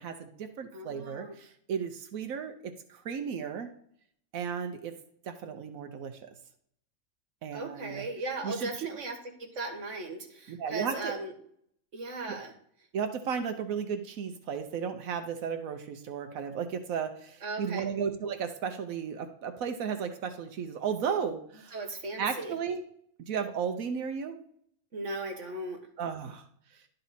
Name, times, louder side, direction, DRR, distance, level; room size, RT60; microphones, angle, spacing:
voice 1, 0.0-3.7 4.3-4.9 5.2-6.3 7.4-8.0 8.4-8.9 10.5-11.2 12.3-12.4 12.9-21.8 22.2-22.8 23.2-24.4 26.0-26.4, right 7 dB, 85° right, 6 dB, 1.2 m, -34 dB
voice 2, 0.7-1.4 7.5-11.3 11.9-12.5 17.4-17.9 21.7-22.6 24.9-25.8, right 2 dB, 60° right, 3 dB, 1.8 m, -37 dB
11.5 x 4.1 x 4.1 m, 0.65 s
omnidirectional pair, 1.4 m